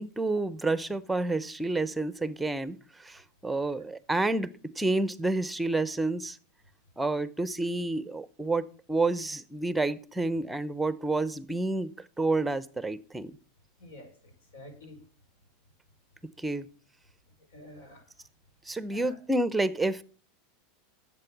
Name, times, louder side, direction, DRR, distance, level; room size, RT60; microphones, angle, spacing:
voice 1, 0.0-6.4 7.0-13.3 16.4-16.7 18.7-20.0, right 2 dB, 5° right, 16 dB, 0.8 m, -29 dB
voice 2, 13.8-15.0 17.5-18.1 18.9-19.2, left 1 dB, 75° left, 6 dB, 5.4 m, -49 dB
11.5 x 7.8 x 6.0 m, 0.39 s
supercardioid pair, 120°, 0 cm